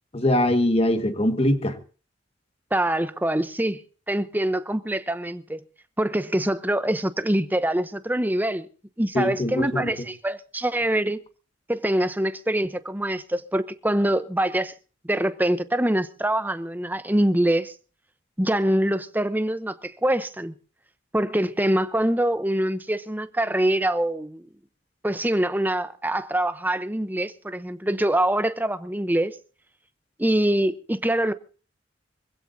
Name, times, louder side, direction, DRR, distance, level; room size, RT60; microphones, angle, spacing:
voice 1, 0.1-1.8 9.1-9.9, left 1 dB, 30° left, 1.7 m, -22 dB
voice 2, 2.7-5.6 6.0-8.7 9.0-11.2 11.7-14.7 15.0-17.7 18.4-20.5 21.1-24.5 25.0-29.3 30.2-31.3, right 1 dB, 10° right, 0.8 m, -24 dB
24.5 x 16.0 x 2.7 m
head